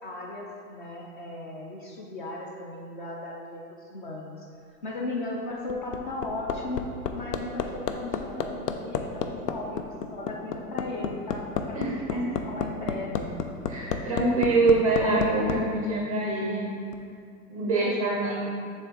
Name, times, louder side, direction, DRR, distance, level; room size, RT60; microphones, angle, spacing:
voice 1, 0.0-4.5 4.8-6.9 7.1-13.4 17.6-18.4, left 2 dB, 35° left, -1 dB, 0.4 m, -37 dB
Hammer, 5.4-15.6 16.9-17.0, left 7 dB, 90° left, 0.6 m, -30 dB
voice 2, 13.7-16.7 17.5-18.4, right 2 dB, 25° right, -3 dB, 0.4 m, -25 dB
7.2 x 3.5 x 3.8 m, 2.4 s
hypercardioid pair, 155°, 47 cm